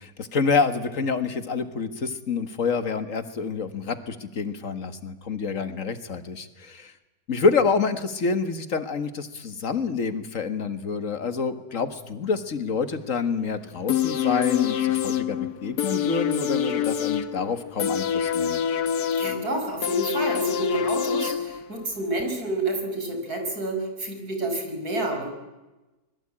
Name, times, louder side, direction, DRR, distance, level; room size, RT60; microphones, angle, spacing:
voice 1, 0.0-6.9 7.3-18.6, left 5 dB, 55° left, 10 dB, 2.0 m, -27 dB
sound 1, 13.9-21.9 22.2-22.3, left 8 dB, 85° left, 1.7 m, -26 dB
voice 2, 19.2-25.3, right 2 dB, 75° right, 4 dB, 5.8 m, -29 dB
25.5 x 21.5 x 8.8 m, 1.1 s
omnidirectional pair, 1.6 m